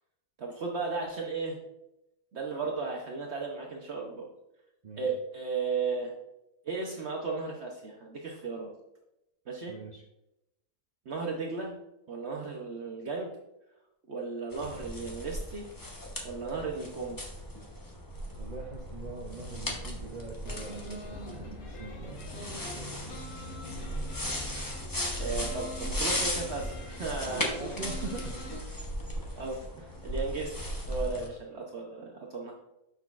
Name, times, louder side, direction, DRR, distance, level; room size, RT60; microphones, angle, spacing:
voice 1, 0.4-1.6 2.3-4.3 5.0-6.2 6.6-8.7 9.5-9.8 11.1-11.8 12.1-13.3 14.1-15.7 16.2-17.2 25.2-27.6 29.4-32.5, right 4 dB, 55° right, 0 dB, 0.9 m, -35 dB
voice 2, 9.7-10.0 18.4-23.0 27.3-28.6, right 3 dB, 75° right, 0 dB, 0.4 m, -43 dB
sound 1, 14.5-31.3, left 1 dB, 20° left, 0.6 m, -37 dB
sound 2, 20.4-28.6, equal, 75° left, 1.6 m, -44 dB
6.8 x 5.9 x 2.4 m, 0.89 s
omnidirectional pair, 1.5 m